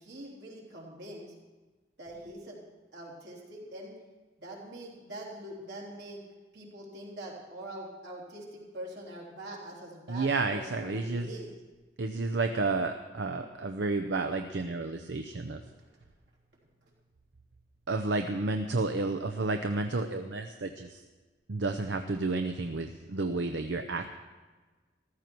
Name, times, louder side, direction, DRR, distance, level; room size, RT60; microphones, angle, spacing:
voice 1, 0.0-1.3 2.0-2.6 2.9-3.9 4.4-6.2 6.5-11.5 15.8-15.9, right 1 dB, 70° right, -3 dB, 3.5 m, -43 dB
voice 2, 10.1-11.3 12.0-15.6 17.9-21.0 21.5-24.1, right 3 dB, 85° right, 6 dB, 0.7 m, -31 dB
14.5 x 13.5 x 4.6 m, 1.3 s
head